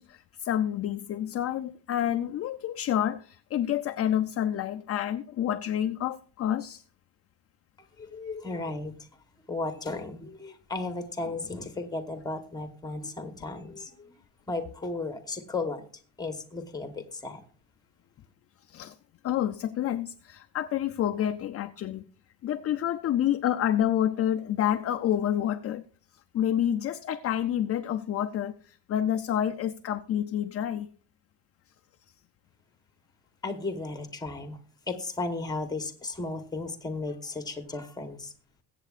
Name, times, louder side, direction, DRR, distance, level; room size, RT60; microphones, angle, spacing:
voice 1, 0.0-6.8 18.7-19.0 19.2-22.0 22.4-25.8 26.3-30.9, left 10 dB, 35° left, 0.4 m, -28 dB
voice 2, 7.8-9.0 9.5-14.1 14.5-15.9 16.2-17.4 33.4-34.6 34.9-38.3, left 3 dB, 10° left, 1.0 m, -35 dB
21.5 x 8.3 x 2.4 m
cardioid pair, 165°, 42 cm